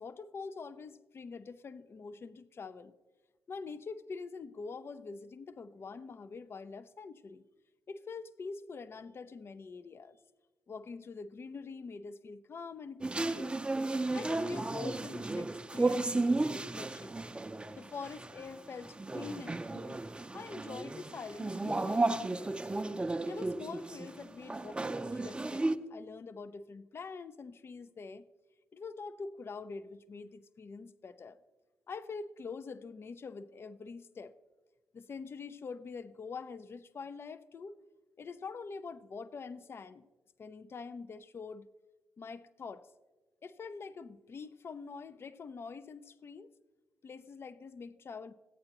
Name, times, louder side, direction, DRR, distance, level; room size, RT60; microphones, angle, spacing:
voice 1, 0.0-2.9 3.5-7.5 7.9-10.2 10.7-13.6 14.1-17.2 17.8-20.0 20.3-22.7 23.3-28.3 28.7-31.4 31.9-34.3 34.9-37.8 38.2-40.1 40.4-41.7 42.2-42.9 43.4-46.5 47.0-48.3, left 4 dB, 45° left, 14 dB, 0.4 m, -45 dB
sound 1, 13.0-25.7, right 2 dB, 15° right, 0.5 m, -34 dB
14.5 x 8.7 x 2.9 m, 1.2 s
supercardioid pair, 50°, 6 cm